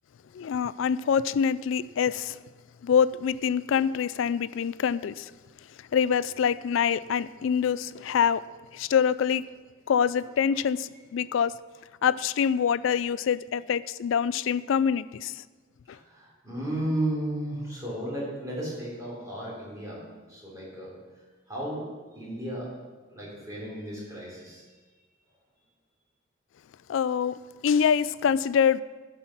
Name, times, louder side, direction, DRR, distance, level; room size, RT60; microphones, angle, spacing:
voice 1, 0.3-2.4 2.8-5.3 5.9-8.4 8.7-9.4 9.9-11.5 12.0-15.4 26.9-28.8, left 7 dB, 70° left, 17 dB, 0.3 m, -25 dB
voice 2, 15.9-20.0 20.3-20.9 21.5-21.8 22.1-22.7 23.1-24.6, right 1 dB, 15° right, -6 dB, 3.3 m, -34 dB
11.5 x 5.6 x 5.8 m, 1.4 s
head